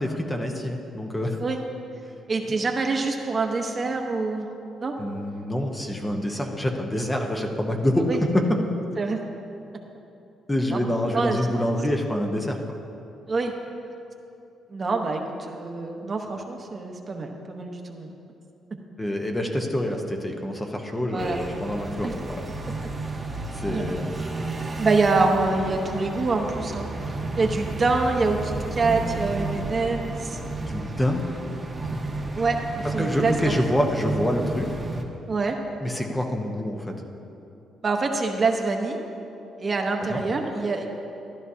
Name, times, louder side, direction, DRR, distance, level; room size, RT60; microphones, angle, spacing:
voice 1, 0.0-1.4 5.0-8.4 10.5-12.6 19.0-22.4 23.5-24.1 30.6-31.2 33.0-34.8 35.8-36.9 40.1-40.2, left 1 dB, 15° left, 2 dB, 1.0 m, -26 dB
voice 2, 2.3-4.5 4.8-4.9 8.1-8.2 9.0-9.2 10.7-10.8 11.1-11.4 13.3-13.5 14.7-18.1 21.1-21.4 22.0-22.1 23.7-23.9 24.8-26.9 27.4-30.4 32.3-33.6 35.3-35.6 37.8-39.0 39.6-40.9, right 3 dB, 35° right, 2 dB, 1.0 m, -25 dB
sound 1, 21.2-35.0, right 2 dB, 20° right, 1.2 m, -32 dB
13.5 x 11.5 x 2.8 m, 2.8 s
cardioid pair, 90°, 0 cm